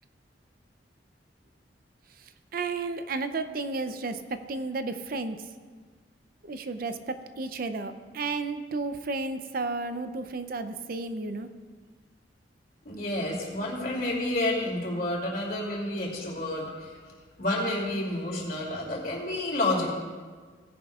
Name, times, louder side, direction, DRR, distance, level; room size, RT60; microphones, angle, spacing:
voice 1, 2.5-5.4 6.4-11.5, right 3 dB, 55° right, 9 dB, 0.6 m, -32 dB
voice 2, 12.8-16.9 17.4-19.9, left 1 dB, 55° left, -2 dB, 2.9 m, -30 dB
18.0 x 10.5 x 2.4 m, 1.5 s
head